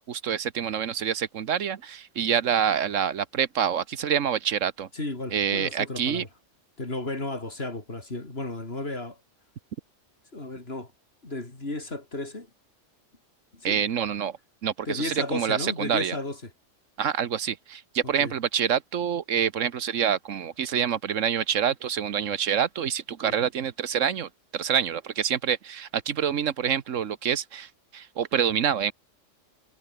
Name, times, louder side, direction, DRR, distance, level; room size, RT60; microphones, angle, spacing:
voice 1, 0.0-4.9 5.3-6.2 13.6-14.4 14.6-16.2 17.0-28.9, right 8 dB, 80° right, 1.4 m, -27 dB
voice 2, 4.9-6.3 6.8-9.2 10.3-10.9 11.2-12.5 13.5-13.8 14.9-16.4 18.2-18.3 23.2-23.3, left 2 dB, 50° left, 4.3 m, -33 dB
omnidirectional pair, 1.3 m